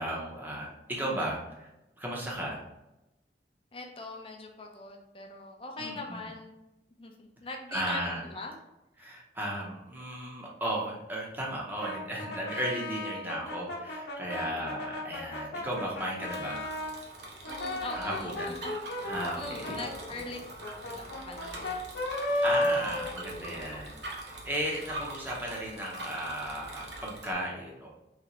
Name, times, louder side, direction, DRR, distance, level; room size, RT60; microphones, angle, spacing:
voice 1, 0.0-1.7 2.0-2.6 5.8-6.3 7.7-8.3 9.0-16.7 17.9-18.5 19.0-19.9 22.4-27.9, right 1 dB, 10° right, -3 dB, 0.8 m, -35 dB
voice 2, 3.7-6.5 7.0-8.6 9.0-9.2 14.4-15.0 17.5-20.4 20.8-22.0 22.3-22.4, left 3 dB, 30° left, 2 dB, 0.6 m, -42 dB
Brass instrument, 11.8-17.0 17.4-23.7, left 1 dB, 70° left, 0.8 m, -34 dB
Bicycle, 15.6-27.3, right 1 dB, 75° right, 0.9 m, -44 dB
4.0 x 3.3 x 3.0 m, 0.95 s
head